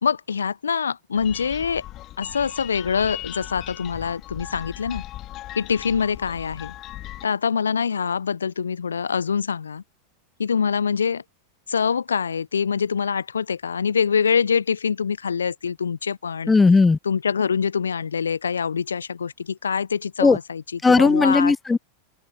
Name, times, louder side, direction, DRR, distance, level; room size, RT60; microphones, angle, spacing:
voice 1, 0.0-1.8 2.2-5.0 5.6-6.7 7.2-9.8 10.4-11.2 11.7-16.5 17.0-20.6 20.9-21.5, left 6 dB, 75° left, 0.6 m, -24 dB
sound 1, 1.1-7.3, left 15 dB, 40° left, 2.6 m, -38 dB
voice 2, 16.5-17.0 20.2-20.4 20.8-21.8, left 4 dB, 15° left, 0.6 m, -16 dB
open air
figure-of-eight pair, 90°, 0 cm